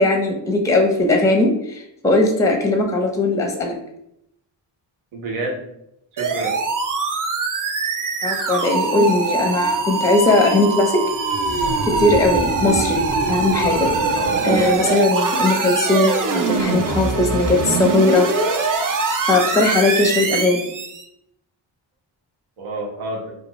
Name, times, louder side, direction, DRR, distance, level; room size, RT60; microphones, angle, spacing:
voice 1, 0.0-3.8 8.2-11.0 11.8-13.0 13.3-13.9 14.4-18.3 19.3-20.7, left 2 dB, 5° left, 3 dB, 0.5 m, -18 dB
voice 2, 5.1-5.7 6.1-6.5 14.1-14.5 22.6-23.3, right 2 dB, 80° right, -1 dB, 0.8 m, -29 dB
sound 1, 6.2-21.0, right 4 dB, 45° right, 0.5 m, -22 dB
2.5 x 2.3 x 3.0 m, 0.79 s
cardioid pair, 55°, 48 cm